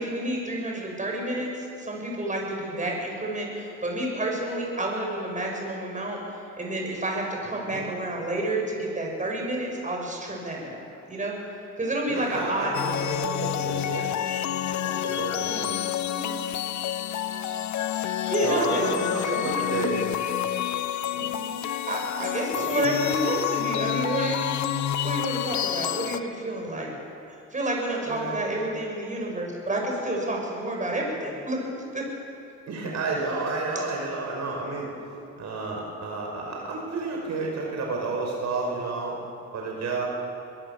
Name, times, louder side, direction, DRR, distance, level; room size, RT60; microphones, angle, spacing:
voice 1, 0.0-10.8 11.1-11.4 11.8-13.2 15.5-15.8 16.1-16.3 17.8-19.8 21.9-24.5 25.0-26.9 27.5-32.0, right 1 dB, 25° right, 0 dB, 6.7 m, -30 dB
voice 2, 7.4-7.9 12.1-14.3 14.8-15.8 18.4-20.1 21.1-21.4 22.5-22.9 28.1-28.4 32.7-34.9 35.4-39.2 39.5-40.1, right 3 dB, 65° right, -1 dB, 5.3 m, -31 dB
sound 1, 12.7-26.2, left 11 dB, 70° left, 0.9 m, -28 dB
23.5 x 19.0 x 7.3 m, 2.6 s
cardioid pair, 90°, 30 cm